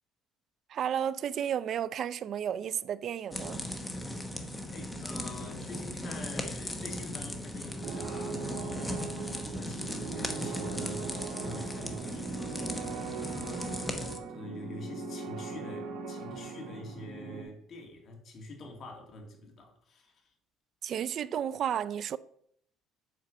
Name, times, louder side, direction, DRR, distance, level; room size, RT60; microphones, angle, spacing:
voice 1, 0.7-3.6 20.8-22.2, right 9 dB, 45° right, 0.4 m, -32 dB
sound 1, 3.3-14.2, left 1 dB, 10° left, 1.0 m, -37 dB
voice 2, 4.7-13.9 14.3-20.3, left 2 dB, 40° left, 2.2 m, -46 dB
sound 2, 7.8-17.4, right 5 dB, 90° right, 2.4 m, -40 dB
7.6 x 4.5 x 6.4 m
cardioid pair, 135°, 0 cm